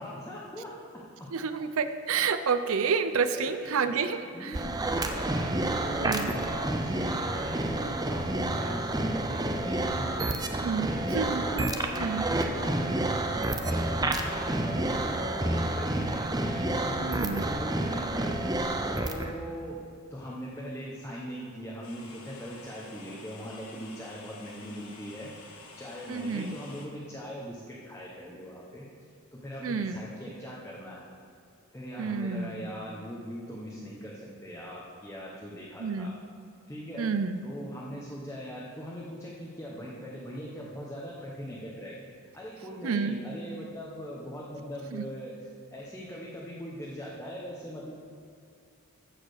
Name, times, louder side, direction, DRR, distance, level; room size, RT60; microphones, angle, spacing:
voice 1, 0.0-1.3 3.3-12.9 13.2-19.8 20.1-28.9 29.3-31.1 31.7-36.1 36.7-37.1 37.4-42.0 42.3-45.3 45.7-47.9, equal, 10° left, -5 dB, 1.0 m, -40 dB
voice 2, 1.3-4.7 5.9-6.3 10.6-11.7 12.0-12.3 17.0-17.4 26.1-26.5 29.6-30.0 32.0-32.7 35.8-36.1 37.0-37.4 42.8-43.2 44.9-45.1, right 5 dB, 70° right, 10 dB, 0.5 m, -29 dB
sound 1, 4.5-19.3, right 1 dB, 15° right, 0.5 m, -29 dB
sound 2, 10.7-19.0, left 1 dB, 40° left, 2.1 m, -48 dB
sound 3, 21.8-26.9, left 3 dB, 75° left, 1.5 m, -49 dB
14.5 x 4.9 x 6.5 m, 2.4 s
head